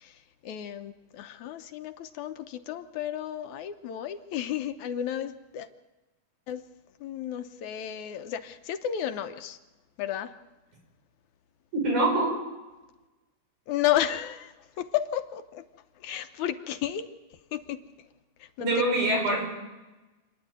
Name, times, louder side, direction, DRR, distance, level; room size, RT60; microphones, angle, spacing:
voice 1, 0.0-5.7 6.5-6.6 7.0-9.6 10.0-10.3 13.7-15.6 16.0-17.0 17.3-17.8 18.4-18.7, left 11 dB, 75° left, 8 dB, 2.2 m, -32 dB
voice 2, 11.7-12.4 18.6-19.4, right 2 dB, 75° right, 0 dB, 7.0 m, -24 dB
27.5 x 10.5 x 9.4 m, 1.1 s
omnidirectional pair, 3.5 m